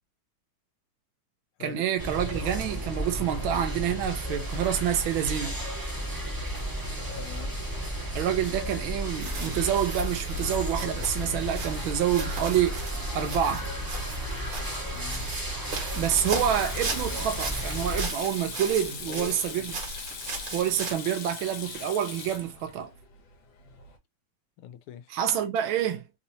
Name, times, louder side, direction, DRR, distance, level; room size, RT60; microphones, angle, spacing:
voice 1, 1.6-5.6 8.1-13.7 15.9-19.8 20.5-22.9 25.1-26.0, right 10 dB, 75° right, 1.4 m, -28 dB
sound 1, 2.0-18.1, equal, 15° right, 0.8 m, -33 dB
voice 2, 7.2-7.6 14.9-15.3 19.1-19.6 24.6-25.1, left 10 dB, 85° left, 1.5 m, -42 dB
sound 2, 9.2-20.9, right 2 dB, 60° right, 2.1 m, -37 dB
Sink (filling or washing), 10.3-24.0, left 5 dB, 65° left, 1.6 m, -42 dB
4.2 x 2.7 x 2.7 m
omnidirectional pair, 2.4 m